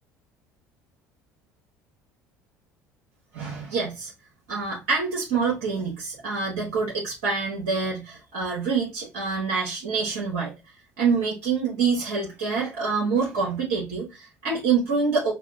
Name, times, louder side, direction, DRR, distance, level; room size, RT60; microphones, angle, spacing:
voice 1, 3.3-4.1 4.5-10.5 11.0-15.3, right 5 dB, 70° right, 1.3 m, -26 dB
5.9 x 2.3 x 2.4 m
hypercardioid pair, 65°, 8 cm